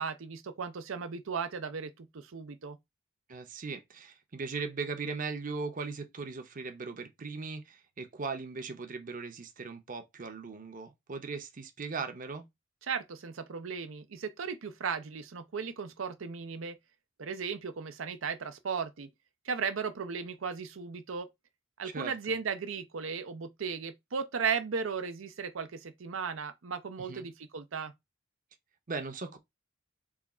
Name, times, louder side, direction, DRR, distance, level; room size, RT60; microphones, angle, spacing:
voice 1, 0.0-2.8 12.9-16.8 17.2-19.1 19.4-21.3 21.8-27.9, right 5 dB, 90° right, 0.6 m, -36 dB
voice 2, 3.3-12.5 21.9-22.4 27.1-27.3 28.9-29.4, right 4 dB, 45° right, 0.7 m, -38 dB
4.7 x 2.4 x 4.2 m
head